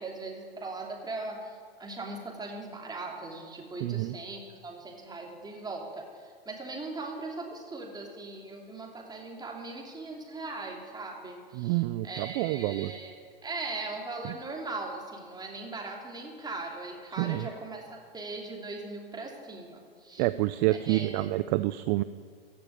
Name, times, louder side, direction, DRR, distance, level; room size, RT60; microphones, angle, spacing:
voice 1, 0.0-13.2 13.4-20.3 20.7-21.4, right 3 dB, 15° right, 0 dB, 3.0 m, -39 dB
voice 2, 3.8-4.1 11.5-12.9 17.2-17.5 20.2-22.0, right 18 dB, 45° right, 14 dB, 0.5 m, -28 dB
15.5 x 6.9 x 9.1 m, 2.1 s
hypercardioid pair, 105°, 31 cm